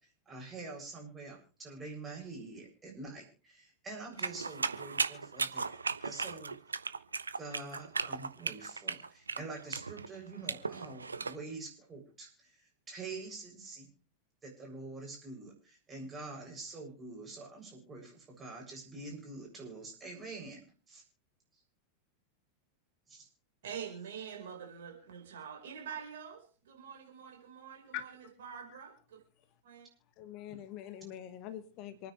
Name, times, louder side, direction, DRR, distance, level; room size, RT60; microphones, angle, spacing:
voice 1, 0.3-5.7 6.0-6.5 7.4-12.6 12.9-13.9 14.4-20.6 20.9-21.0 23.1-23.3 30.5-30.6, right 3 dB, 20° right, 7.4 m, -46 dB
sound 1, 4.2-11.4, right 4 dB, 75° right, 0.7 m, -36 dB
voice 2, 23.6-29.2 29.6-29.9, right 7 dB, 60° right, 4.8 m, -45 dB
voice 3, 30.2-32.1, left 12 dB, 40° left, 1.3 m, -43 dB
27.5 x 9.7 x 3.3 m
figure-of-eight pair, 90°, 0 cm